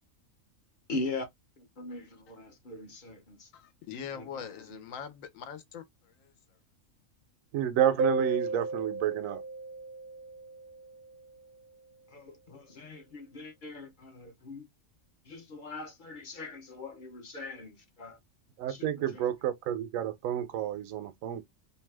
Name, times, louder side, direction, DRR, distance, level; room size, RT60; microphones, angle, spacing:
voice 1, 0.9-1.2 1.8-3.5 4.2-4.3 12.1-14.6 15.3-18.2 18.7-18.9, left 2 dB, 45° left, 0.7 m, -40 dB
voice 2, 3.5-6.3, left 7 dB, 80° left, 1.1 m, -43 dB
voice 3, 7.5-9.4 18.6-21.4, right 10 dB, 80° right, 1.0 m, -30 dB
sound 1, 8.0-11.3, right 3 dB, 60° right, 0.6 m, -34 dB
2.7 x 2.2 x 3.2 m
omnidirectional pair, 1.4 m